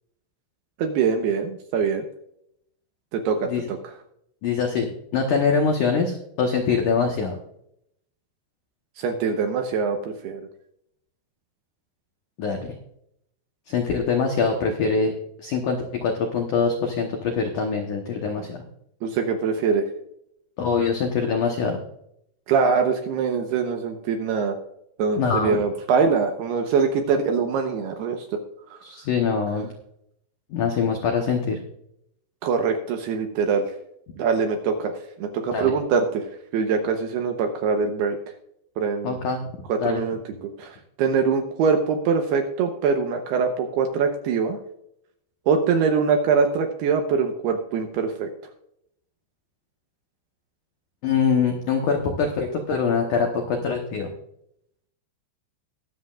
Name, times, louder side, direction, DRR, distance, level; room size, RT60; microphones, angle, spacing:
voice 1, 0.8-2.0 3.1-3.8 9.0-10.4 19.0-19.8 22.5-24.6 25.0-28.2 28.7-28.8 32.4-33.6 34.2-34.9 35.2-36.2 36.5-38.2 38.8-39.2 39.7-40.2 40.6-44.6 45.5-48.3, right 5 dB, 75° right, 5 dB, 2.5 m, -23 dB
voice 2, 4.4-7.4 12.4-12.7 13.7-15.1 15.4-18.6 20.6-21.8 25.2-25.6 28.8-29.7 30.5-31.6 35.5-35.7 39.0-39.5 39.8-40.0 51.0-54.1, left 5 dB, 80° left, 2 dB, 1.8 m, -24 dB
22.0 x 7.5 x 2.5 m, 0.75 s
omnidirectional pair, 5.5 m